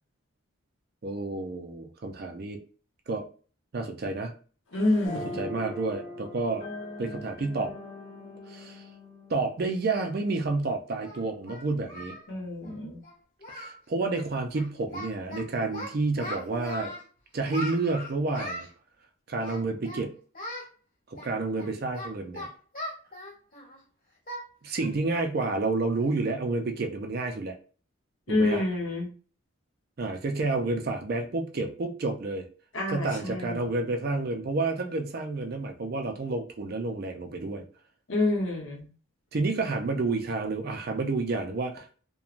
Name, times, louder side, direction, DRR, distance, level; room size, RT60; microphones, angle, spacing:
voice 1, 1.0-2.6 3.1-3.3 3.7-4.3 5.4-6.7 7.0-7.7 8.5-8.8 9.3-12.2 13.5-16.9 17.3-18.7 19.3-20.1 21.1-22.5 24.6-27.6 28.3-28.6 30.0-32.4 32.9-37.7 39.3-42.0, right 3 dB, 45° right, 4 dB, 0.4 m, -30 dB
voice 2, 4.7-5.5 12.3-13.0 28.3-29.1 32.7-33.7 38.1-38.9, left 2 dB, 65° left, 0 dB, 0.9 m, -28 dB
sound 1, 5.0-10.5, left 2 dB, 25° left, 0.6 m, -41 dB
Singing, 10.2-10.3 11.0-12.2 12.5-12.7 13.0-13.1 13.4-13.8 14.0-14.3 14.5-15.4 15.7-17.0 17.5-18.7 19.4-20.0 20.3-20.7 21.1-23.8 24.3-24.5 24.8-25.0 25.4-25.5 26.0-26.3, left 1 dB, 45° left, 1.2 m, -39 dB
3.0 x 2.2 x 2.4 m, 0.40 s
head